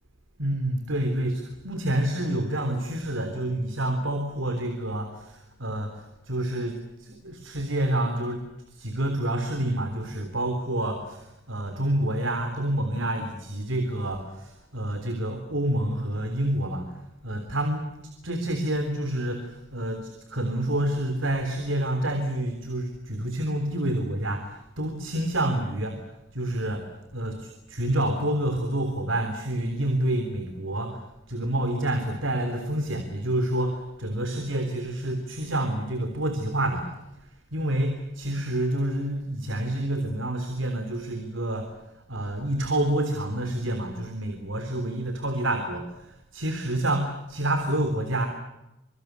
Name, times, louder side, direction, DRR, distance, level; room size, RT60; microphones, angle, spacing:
voice 1, 0.4-16.9 17.2-17.9 18.2-26.0 26.3-36.9 37.5-41.7 42.1-48.3, right 1 dB, 80° right, 7 dB, 3.5 m, -28 dB
26.0 x 24.0 x 8.2 m, 0.91 s
head